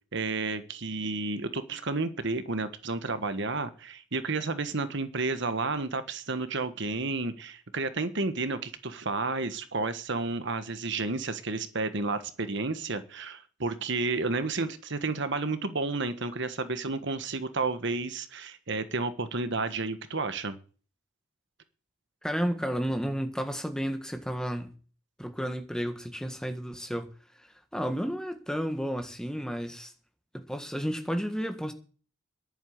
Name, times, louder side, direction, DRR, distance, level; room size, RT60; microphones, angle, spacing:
voice 1, 0.1-20.5, right 3 dB, 60° right, 1.4 m, -31 dB
voice 2, 22.2-24.7 25.2-27.1 27.7-29.9 30.3-31.7, equal, 5° left, 1.7 m, -32 dB
11.0 x 8.9 x 8.0 m
head